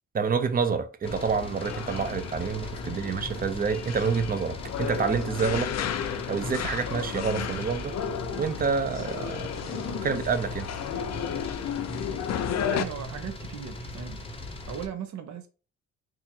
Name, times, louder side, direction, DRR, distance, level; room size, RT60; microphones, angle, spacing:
voice 1, 0.1-5.7 6.3-8.0 8.3-10.7, right 5 dB, 30° right, 0.6 m, -28 dB
sound 1, 1.0-14.9, left 1 dB, 20° left, 0.7 m, -39 dB
sound 2, 1.1-12.9, left 9 dB, 60° left, 0.5 m, -33 dB
voice 2, 12.6-14.2 14.7-15.5, right 8 dB, 70° right, 0.9 m, -37 dB
2.8 x 2.5 x 4.3 m
cardioid pair, 90°, 30 cm